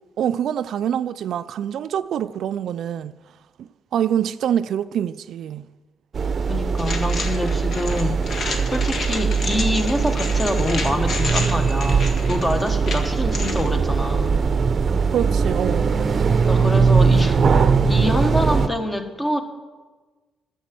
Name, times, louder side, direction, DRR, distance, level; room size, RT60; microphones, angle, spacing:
voice 1, 0.2-3.2 3.9-5.7 15.1-16.1, right 9 dB, 70° right, 0.3 m, -25 dB
sound 1, 6.1-18.7, right 5 dB, 45° right, 0.7 m, -20 dB
voice 2, 6.5-14.4 16.5-19.4, left 1 dB, 15° left, 1.4 m, -26 dB
sound 2, 6.8-13.7, left 3 dB, 55° left, 1.6 m, -31 dB
11.0 x 7.0 x 7.5 m
cardioid pair, 90°, 0 cm